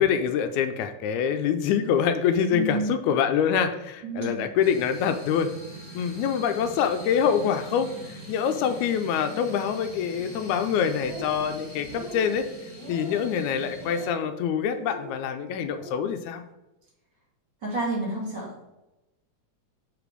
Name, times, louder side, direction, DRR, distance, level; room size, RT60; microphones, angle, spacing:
voice 1, 0.0-5.5 5.9-7.9 8.3-12.5 12.9-16.4, left 7 dB, 85° left, 8 dB, 2.0 m, -25 dB
voice 2, 2.5-2.9 4.0-4.4 17.6-18.5, right 1 dB, 40° right, -4 dB, 2.8 m, -29 dB
sound 1, 4.6-14.1, right 1 dB, 20° left, 2.7 m, -43 dB
sound 2, 10.9-11.5 11.8-12.4 12.7-13.3 13.8-14.3 14.7-15.1 15.6-16.0, equal, 15° right, 0.9 m, -41 dB
6.7 x 5.0 x 5.1 m, 0.96 s
omnidirectional pair, 3.4 m